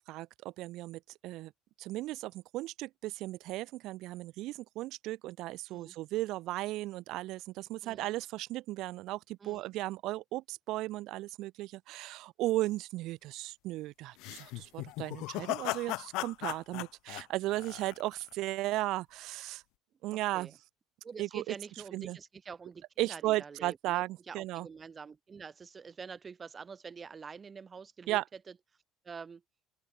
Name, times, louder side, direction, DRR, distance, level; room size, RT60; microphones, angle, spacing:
voice 1, 0.1-1.5 1.8-19.6 20.0-20.5 21.2-21.5 21.9-22.2 23.0-24.7 28.1-28.2, right 17 dB, 65° right, 0.7 m, -36 dB
voice 2, 9.4-9.7 20.1-20.6 21.0-28.5 29.0-29.4, right 5 dB, 25° right, 7.7 m, -46 dB
sound 1, 14.2-18.3, left 22 dB, 75° left, 0.7 m, -37 dB
open air
cardioid pair, 115°, 0 cm